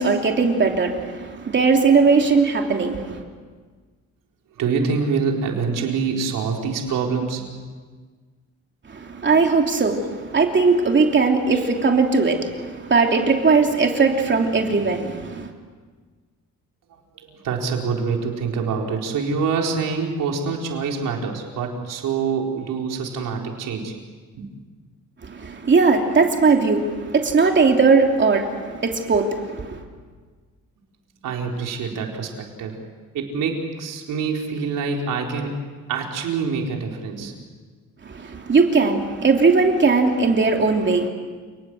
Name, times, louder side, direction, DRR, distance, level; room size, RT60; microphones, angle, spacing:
voice 1, 0.0-3.2 8.8-15.5 25.2-29.8 38.0-41.1, right 4 dB, 35° right, 2 dB, 3.0 m, -19 dB
voice 2, 4.6-7.4 17.2-23.9 31.2-32.8 33.1-35.6 35.9-37.3, right 5 dB, 90° right, 1 dB, 4.2 m, -25 dB
29.5 x 20.0 x 7.9 m, 1.5 s
cardioid pair, 115°, 32 cm